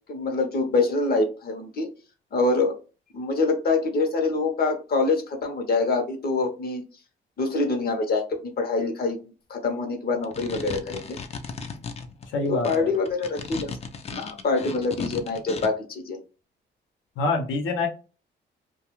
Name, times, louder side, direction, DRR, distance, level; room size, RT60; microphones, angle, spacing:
voice 1, 0.1-1.9 2.3-2.7 3.1-6.8 7.4-8.3 8.6-9.2 9.5-11.2 12.5-13.7 14.1-16.2, left 3 dB, 50° left, 4 dB, 0.8 m, -25 dB
sound 1, 10.1-15.7, left 5 dB, 30° left, 0.4 m, -36 dB
voice 2, 12.3-12.9 17.2-17.9, left 3 dB, 80° left, 3 dB, 0.7 m, -25 dB
2.3 x 2.3 x 2.9 m, 0.34 s
cardioid pair, 90°, 20 cm